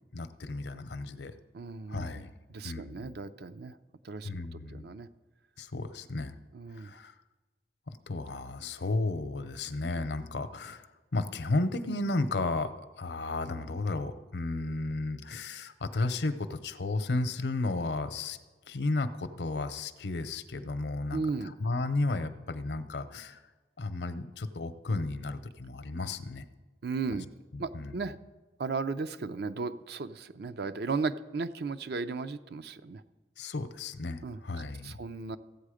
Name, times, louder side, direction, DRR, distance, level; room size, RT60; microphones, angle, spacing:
voice 1, 0.1-1.3 1.9-2.3 2.6-3.1 4.2-4.9 5.6-6.3 6.8-7.1 7.9-10.9 11.1-18.4 18.7-23.4 23.8-26.4 27.5-28.1 33.4-35.0, left 2 dB, 70° left, 12 dB, 0.7 m, -33 dB
voice 2, 1.5-2.3 2.5-3.8 4.0-4.3 4.7-5.1 6.5-6.9 21.1-21.5 26.8-27.3 27.6-28.2 28.6-33.0 34.2-34.4 34.8-35.4, right 4 dB, 65° right, 12 dB, 0.5 m, -35 dB
14.5 x 8.2 x 5.0 m, 1.2 s
head